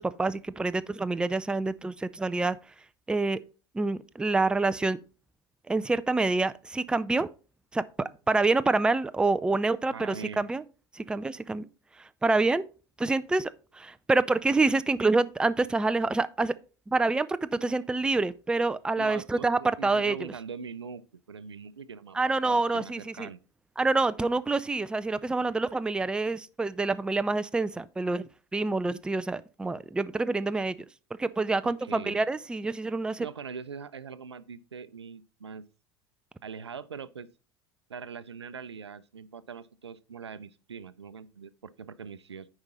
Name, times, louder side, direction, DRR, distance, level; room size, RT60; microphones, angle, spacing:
voice 1, 0.0-2.6 3.1-3.4 3.7-5.0 5.7-7.3 7.7-10.6 10.9-11.7 12.2-12.6 13.0-16.6 16.9-20.1 22.1-23.3 23.8-30.8 31.2-33.3, right 3 dB, 5° right, 0.4 m, -27 dB
voice 2, 9.9-10.5 19.0-21.0 21.3-22.2 22.4-23.4 31.6-32.2 33.2-35.6 36.4-37.3 37.9-42.5, right 6 dB, 85° right, 0.5 m, -42 dB
9.5 x 4.9 x 4.2 m
figure-of-eight pair, 80°, 14 cm